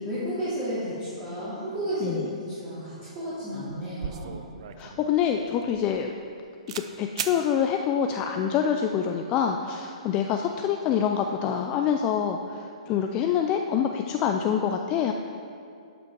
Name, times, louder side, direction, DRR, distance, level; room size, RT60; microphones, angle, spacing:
voice 1, 0.0-4.4, equal, 20° right, -12 dB, 2.4 m, -32 dB
sound 1, 3.3-3.4 3.7-6.4 6.7-6.9 7.2-7.4, right 8 dB, 55° right, 0.5 m, -37 dB
voice 2, 4.8-6.1 6.7-15.1, left 8 dB, 25° left, 4 dB, 0.4 m, -26 dB
11.5 x 6.1 x 4.6 m, 2.4 s
hypercardioid pair, 150°, 4 cm